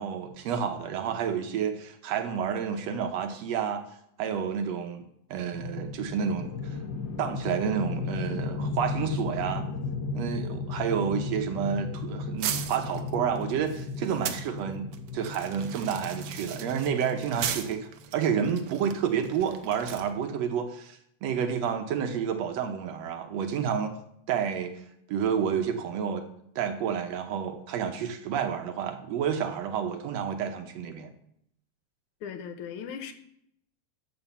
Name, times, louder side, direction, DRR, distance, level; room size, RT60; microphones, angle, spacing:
voice 1, 0.0-3.8 4.2-5.0 5.3-6.8 7.2-9.7 10.2-23.9 24.3-24.7 25.1-26.2 26.6-31.1, right 7 dB, 70° right, 6 dB, 1.9 m, -30 dB
sound 1, 5.5-17.8, left 4 dB, 70° left, 1.1 m, -35 dB
sound 2, 12.4-14.5 14.9-20.1, right 10 dB, 90° right, 1.2 m, -37 dB
voice 2, 32.2-33.1, left 7 dB, 85° left, 8 dB, 2.3 m, -38 dB
12.0 x 4.4 x 7.2 m, 0.72 s
omnidirectional pair, 3.4 m